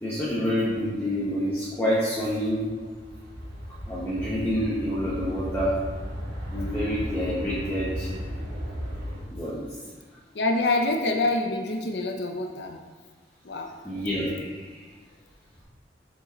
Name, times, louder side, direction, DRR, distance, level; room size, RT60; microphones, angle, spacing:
voice 1, 0.0-2.7 3.9-5.8 6.5-8.1 9.3-9.6 13.8-14.8, equal, 15° left, -8 dB, 1.3 m, -27 dB
sound 1, 2.5-9.2, equal, 90° right, 2.1 m, -35 dB
voice 2, 10.3-12.8 13.4-13.7, left 2 dB, 70° left, 3 dB, 0.7 m, -26 dB
7.3 x 5.4 x 3.9 m, 1.4 s
head